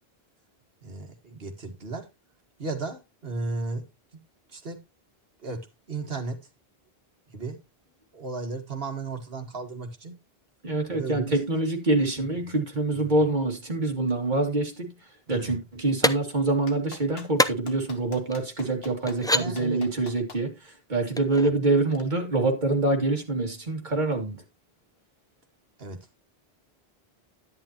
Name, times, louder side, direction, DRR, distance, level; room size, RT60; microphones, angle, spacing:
voice 1, 0.8-2.0 2.6-3.8 4.5-4.8 5.4-5.6 5.9-6.4 7.3-7.6 8.1-10.2 10.9-11.4 12.9-13.1 15.3-15.6 19.3-19.8 25.8-26.2, right 3 dB, 70° right, 2.1 m, -34 dB
voice 2, 10.6-14.9 15.3-24.4, right 2 dB, 50° right, 2.7 m, -25 dB
sound 1, 16.0-16.1 17.4-17.5 18.3-18.4 19.1-19.4 21.2-21.5, left 1 dB, 5° left, 0.4 m, -23 dB
Clapping, 16.7-20.4 21.9-22.0, left 4 dB, 80° left, 2.1 m, -43 dB
11.0 x 9.8 x 2.9 m
omnidirectional pair, 1.0 m